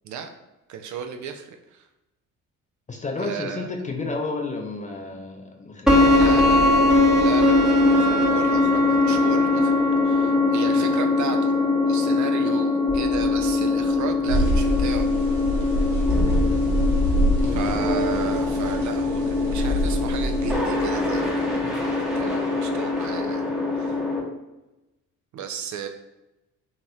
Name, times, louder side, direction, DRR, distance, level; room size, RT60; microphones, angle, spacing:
voice 1, 0.7-1.9 3.2-3.7 6.1-6.8 7.2-9.7 10.0-11.6 11.9-15.1 16.2-16.5 17.5-23.5 23.7-24.0 25.3-25.9, right 7 dB, 45° right, 5 dB, 0.4 m, -34 dB
voice 2, 2.9-6.3 10.5-10.8 17.4-17.8, left 3 dB, 20° left, 2 dB, 0.5 m, -32 dB
sound 1, 5.9-24.2, left 2 dB, ahead, 0.8 m, -21 dB
sound 2, 14.3-20.5, equal, 90° right, 0.7 m, -25 dB
2.9 x 2.8 x 2.3 m, 0.95 s
hypercardioid pair, 45°, 42 cm